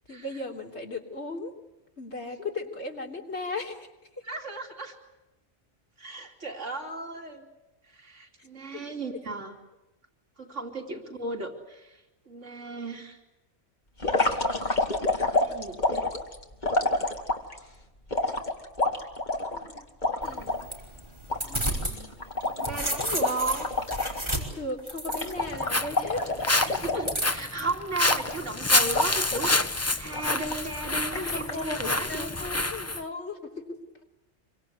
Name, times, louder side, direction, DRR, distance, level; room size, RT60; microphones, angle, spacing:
voice 1, 0.1-1.5 2.0-3.9 10.9-11.0 19.5-19.9 20.2-20.7 21.5-22.1 22.6-23.3 24.3-26.4 31.1-31.8 32.0-34.0, left 2 dB, 65° left, 0 dB, 3.9 m, -37 dB
voice 2, 4.2-4.9 6.0-7.5 7.9-9.5 10.4-13.2 15.3-16.1 22.5-23.7 26.5-29.7 30.0-32.3, right 2 dB, 85° right, 2 dB, 3.4 m, -35 dB
sound 1, 14.0-17.6 18.1-20.6 21.0-21.1 21.3-24.2 24.5-24.7 25.1-27.6 28.1-28.6 28.9-29.6 30.1-30.7 31.1-31.6, left 2 dB, 40° left, 2.7 m, -28 dB
sound 2, 20.2-22.0 22.3-25.6 27.0-27.6, right 1 dB, 25° right, 5.2 m, -32 dB
Walk footsteps, 25.4-33.0, left 2 dB, 15° left, 0.8 m, -28 dB
26.5 x 24.5 x 8.2 m, 1.0 s
omnidirectional pair, 1.2 m